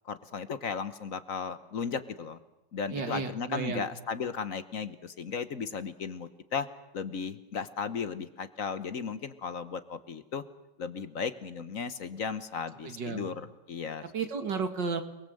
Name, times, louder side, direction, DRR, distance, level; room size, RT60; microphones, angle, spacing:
voice 1, 0.0-2.4 2.7-6.7 6.9-10.4 10.8-13.3 13.7-14.0, left 6 dB, 50° left, 12 dB, 1.4 m, -35 dB
voice 2, 2.9-3.9 12.8-13.3 14.1-15.0, right 5 dB, 85° right, 7 dB, 2.6 m, -33 dB
29.0 x 20.5 x 7.8 m, 0.96 s
omnidirectional pair, 1.9 m